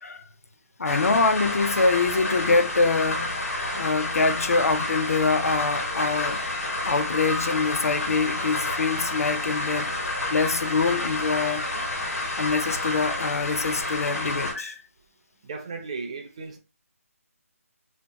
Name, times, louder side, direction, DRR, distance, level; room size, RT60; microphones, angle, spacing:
sound 1, 0.8-14.5, left 2 dB, 90° left, 1.4 m, -29 dB
voice 1, 0.8-3.4 3.8-11.7 12.4-14.8, left 4 dB, 75° left, 0.5 m, -25 dB
voice 2, 15.4-16.6, right 4 dB, 25° right, 0.4 m, -35 dB
3.0 x 2.8 x 2.2 m
hypercardioid pair, 170°, 8 cm